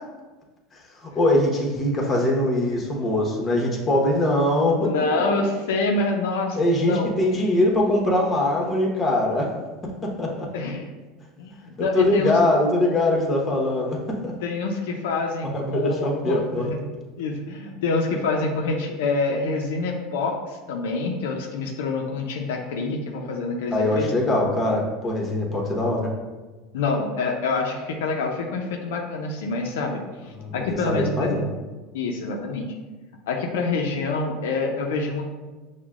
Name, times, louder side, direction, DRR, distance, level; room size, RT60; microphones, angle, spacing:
voice 1, 0.7-4.9 6.6-9.5 10.0-10.5 11.8-14.0 14.2-14.3 15.5-16.7 23.7-26.1 30.4-30.5 30.9-31.5, left 1 dB, 25° left, -1 dB, 1.0 m, -22 dB
voice 2, 4.8-7.1 10.5-10.9 11.4-12.4 14.4-16.8 17.2-24.1 26.7-31.4 31.9-32.7 33.3-35.2, left 3 dB, 80° left, 1 dB, 0.4 m, -26 dB
5.9 x 2.1 x 2.3 m, 1.2 s
supercardioid pair, 105°, 0 cm